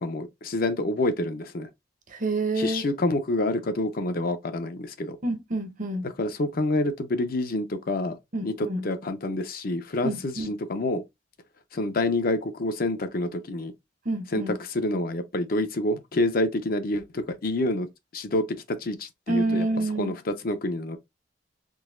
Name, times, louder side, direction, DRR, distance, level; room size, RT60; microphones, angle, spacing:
voice 1, 0.0-1.7 2.6-5.2 6.2-8.1 8.4-11.0 11.7-13.7 14.3-18.4 18.8-19.7 20.0-21.0, left 2 dB, 50° left, 0.6 m, -27 dB
voice 2, 2.1-2.8 5.2-6.1 8.3-8.8 10.0-10.5 14.0-14.6 19.3-20.2, right 2 dB, 45° right, 0.8 m, -28 dB
3.9 x 2.7 x 2.5 m
head